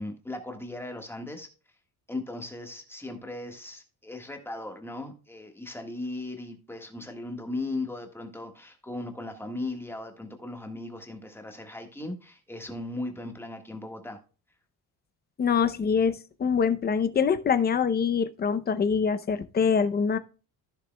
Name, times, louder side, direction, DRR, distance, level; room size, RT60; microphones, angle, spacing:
voice 1, 0.0-1.5 2.1-14.2, left 2 dB, 5° left, 1.5 m, -37 dB
voice 2, 15.4-20.2, left 6 dB, 25° left, 0.6 m, -24 dB
15.0 x 6.5 x 2.2 m
cardioid pair, 175°, 38 cm